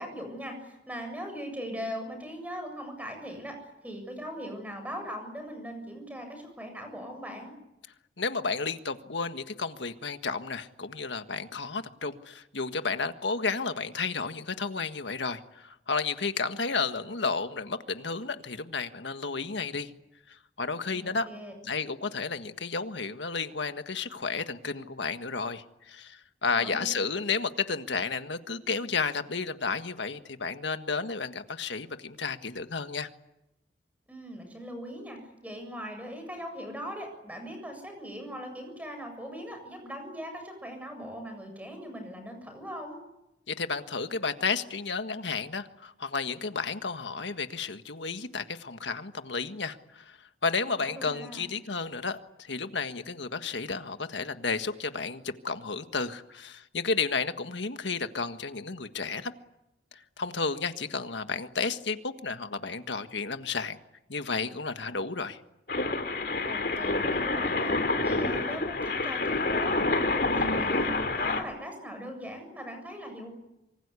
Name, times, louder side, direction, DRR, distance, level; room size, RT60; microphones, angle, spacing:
voice 1, 0.0-7.5 20.9-21.5 26.5-26.9 34.1-43.0 50.8-51.5 66.5-73.3, equal, 10° right, 5 dB, 7.5 m, -40 dB
voice 2, 8.2-19.9 20.3-21.3 21.6-33.1 43.5-50.2 50.4-59.3 60.2-63.8 64.1-65.4, left 4 dB, 85° left, 8 dB, 1.6 m, -32 dB
sound 1, 65.7-71.4, left 2 dB, 55° left, 3.6 m, -28 dB
26.0 x 24.5 x 8.4 m, 0.90 s
head